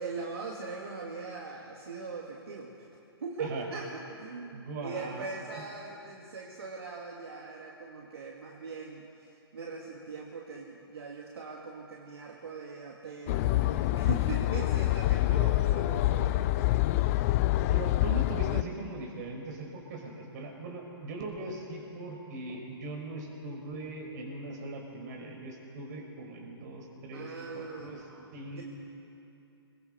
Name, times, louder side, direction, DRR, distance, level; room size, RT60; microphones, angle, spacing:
voice 1, 0.0-2.9 3.2-17.4 27.1-28.6, right 4 dB, 70° right, -2 dB, 2.7 m, -41 dB
voice 2, 4.5-5.2 15.3-15.6 17.7-28.0 28.3-28.6, right 2 dB, 45° right, 0 dB, 5.9 m, -40 dB
sound 1, 13.3-18.6, left 16 dB, 35° left, 0.6 m, -26 dB
29.0 x 23.0 x 4.7 m, 2.7 s
hypercardioid pair, 130°, 13 cm